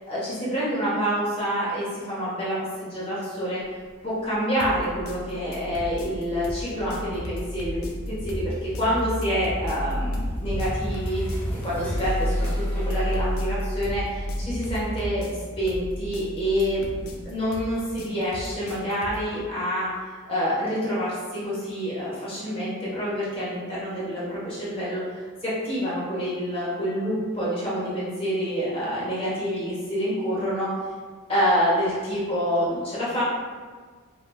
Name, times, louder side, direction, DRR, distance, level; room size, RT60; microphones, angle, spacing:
voice 1, 0.1-3.6 4.0-15.3 15.6-16.9 17.2-30.8 31.3-33.2, equal, 25° left, -9 dB, 1.4 m, -27 dB
sound 1, 4.6-19.3, left 1 dB, 80° left, 0.6 m, -39 dB
sound 2, 4.7-17.8, equal, 10° left, 0.5 m, -31 dB
5.1 x 2.9 x 2.4 m, 1.5 s
head